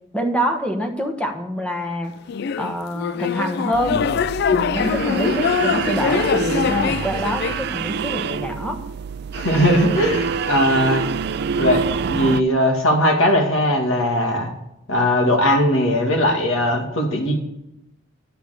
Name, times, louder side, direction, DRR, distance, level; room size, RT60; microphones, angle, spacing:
voice 1, 0.1-2.1 2.6-4.0 4.5-8.8, equal, 5° left, 3 dB, 1.2 m, -25 dB
sound 1, 2.3-7.6, left 7 dB, 55° left, 0.3 m, -23 dB
sound 2, 3.7-12.4, right 5 dB, 55° right, 0.4 m, -26 dB
voice 2, 9.3-11.1 11.6-11.8 12.1-14.5 14.9-17.4, equal, 80° left, 2 dB, 2.1 m, -19 dB
10.0 x 6.8 x 6.5 m, 0.87 s
head